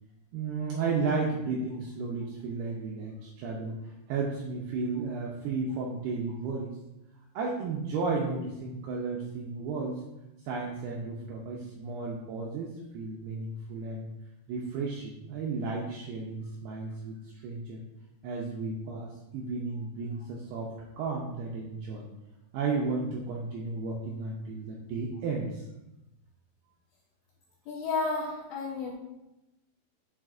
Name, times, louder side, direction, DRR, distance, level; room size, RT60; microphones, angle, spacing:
voice 1, 0.3-6.7 7.3-10.0 10.4-14.1 14.5-17.2 17.4-17.8 18.2-22.1 22.5-25.6, right 4 dB, 90° right, -2 dB, 2.3 m, -33 dB
voice 2, 27.7-28.9, left 3 dB, 75° left, -4 dB, 2.4 m, -31 dB
9.1 x 5.4 x 2.5 m, 0.94 s
omnidirectional pair, 5.3 m